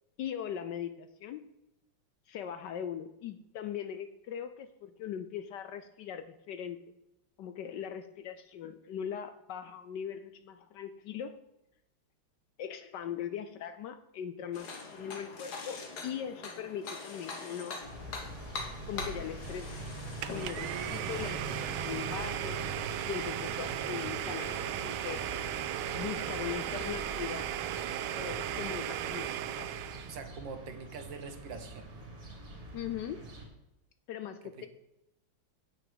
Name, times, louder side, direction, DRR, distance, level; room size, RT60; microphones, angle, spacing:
voice 1, 0.2-1.4 2.3-6.8 7.4-11.4 12.6-17.8 18.9-19.7 20.1-22.6 23.1-25.3 26.0-27.5 28.1-29.8 32.7-33.2 34.1-34.7, left 9 dB, 70° left, 11 dB, 1.1 m, -40 dB
sound 1, 14.5-21.3, left 4 dB, 55° left, 1.8 m, -43 dB
sound 2, 17.8-33.5, right 1 dB, 45° right, 2.7 m, -43 dB
Domestic sounds home sounds, 20.2-30.2, right 12 dB, 85° right, 1.4 m, -36 dB
voice 2, 30.1-32.0 34.4-34.7, right 5 dB, 65° right, 7 dB, 1.7 m, -44 dB
8.7 x 6.0 x 7.9 m, 0.88 s
omnidirectional pair, 2.2 m